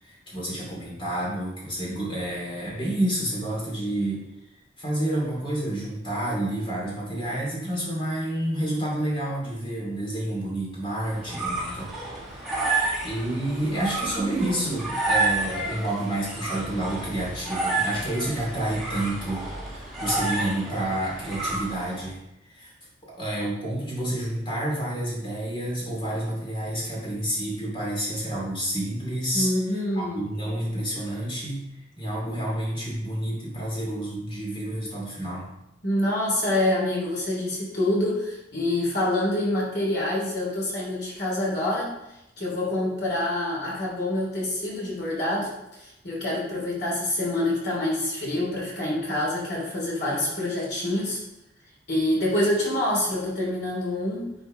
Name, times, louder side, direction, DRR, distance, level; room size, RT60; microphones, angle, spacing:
voice 1, 0.0-4.2 4.8-11.9 12.3-22.7 23.1-29.5 29.9-31.6 32.0-35.5, right 1 dB, 30° left, -4 dB, 2.6 m, -29 dB
sound 1, 10.9-22.1, right 2 dB, ahead, 2.0 m, -30 dB
voice 2, 29.3-30.3 35.8-42.0 42.4-51.2 51.9-54.4, left 1 dB, 60° left, -4 dB, 2.9 m, -26 dB
10.0 x 4.4 x 3.8 m, 0.91 s
head